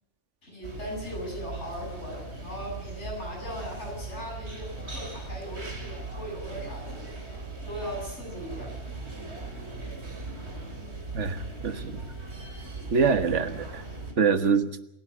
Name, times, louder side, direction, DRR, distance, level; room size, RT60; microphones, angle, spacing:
voice 1, 0.4-7.0 7.7-8.8, equal, 75° left, 8.6 m, -38 dB
sound 1, 0.6-14.1, right 3 dB, 65° right, 3.6 m, -39 dB
voice 2, 11.1-12.0 12.9-13.7 14.2-14.7, right 5 dB, 85° right, 1.7 m, -24 dB
27.0 x 11.5 x 8.5 m
omnidirectional pair, 1.2 m